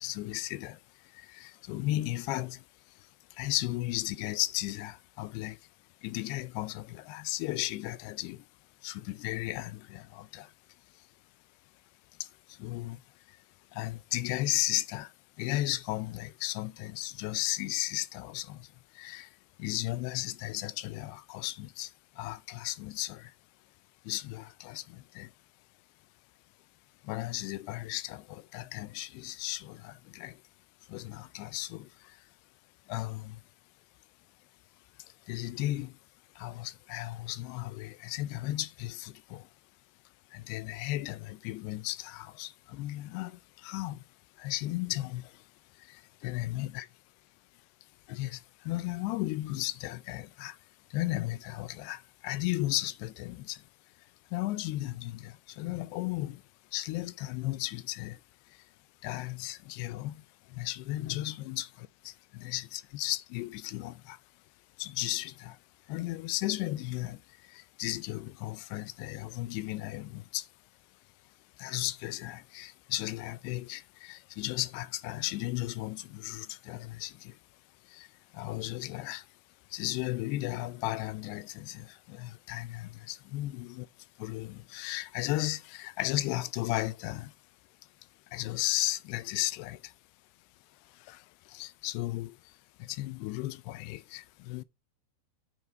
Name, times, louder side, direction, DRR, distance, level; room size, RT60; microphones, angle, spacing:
voice 1, 0.0-0.8 1.4-2.6 3.4-5.6 6.0-8.4 8.8-10.5 12.6-13.0 13.8-15.1 15.4-18.6 19.0-19.3 19.6-21.9 22.2-23.2 24.1-24.8 25.2-25.3 27.1-30.3 30.9-31.9 32.9-33.4 35.3-35.9 36.4-39.4 40.3-43.3 43.6-44.0 44.4-45.2 46.2-46.9 48.1-48.4 48.7-50.5 50.9-53.6 54.3-56.4 56.7-58.2 59.0-60.1 60.6-61.6 62.3-64.2 64.8-65.5 65.9-67.2 67.8-70.4 71.6-77.1 78.0-78.1 78.4-79.2 79.7-83.9 84.2-87.3 88.3-89.8 91.1-91.2 91.5-92.3 92.9-94.6, left 17 dB, 85° left, 2.6 m, -35 dB
9.4 x 4.5 x 3.8 m
omnidirectional pair, 4.6 m